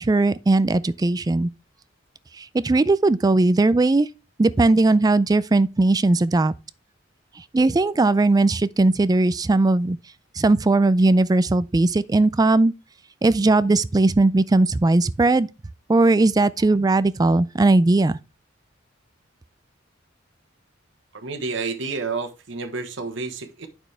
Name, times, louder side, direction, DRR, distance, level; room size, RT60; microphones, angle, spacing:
voice 1, 0.0-1.5 2.4-4.1 4.4-6.5 7.4-10.0 10.4-12.7 13.2-15.5 15.9-18.2, right 2 dB, 20° right, 0.3 m, -18 dB
voice 2, 21.1-23.7, right 4 dB, 70° right, 1.2 m, -30 dB
8.9 x 6.2 x 3.3 m
head